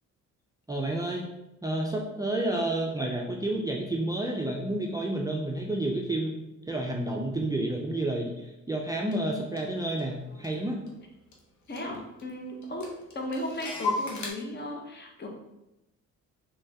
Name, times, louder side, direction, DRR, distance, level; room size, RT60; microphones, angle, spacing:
voice 1, 0.7-1.2 1.6-10.8, right 1 dB, 10° right, -1 dB, 0.4 m, -30 dB
Clock, 9.1-9.2 9.6-11.0 11.3-11.4 11.7-12.3 12.6-14.3, left 2 dB, 70° left, 0.9 m, -35 dB
voice 2, 11.7-12.9 13.1-15.3, left 1 dB, 35° left, 1 dB, 0.8 m, -35 dB
3.4 x 3.2 x 2.7 m, 0.92 s
cardioid pair, 90°, 30 cm